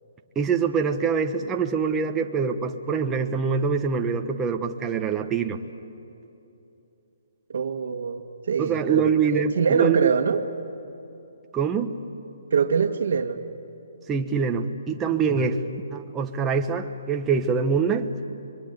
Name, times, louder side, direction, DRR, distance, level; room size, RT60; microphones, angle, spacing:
voice 1, 0.3-5.6 8.6-10.1 11.5-11.9 14.1-15.6 15.9-18.1, right 6 dB, 10° right, 4 dB, 1.1 m, -24 dB
voice 2, 7.5-10.4 12.5-13.4 15.4-15.6, right 6 dB, 55° right, 3 dB, 1.6 m, -24 dB
27.5 x 24.0 x 8.2 m, 2.9 s
hypercardioid pair, 170°, 0 cm